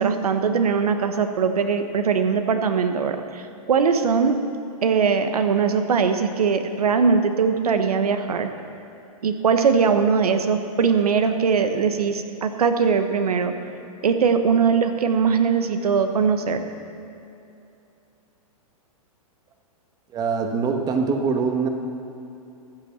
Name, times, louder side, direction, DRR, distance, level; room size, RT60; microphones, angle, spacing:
voice 1, 0.0-4.4 4.8-8.5 9.2-13.5 14.0-16.6, right 6 dB, 90° right, 7 dB, 1.1 m, -21 dB
voice 2, 20.1-21.7, right 5 dB, 20° right, 4 dB, 1.2 m, -23 dB
14.5 x 8.1 x 7.0 m, 2.7 s
hypercardioid pair, 140°, 19 cm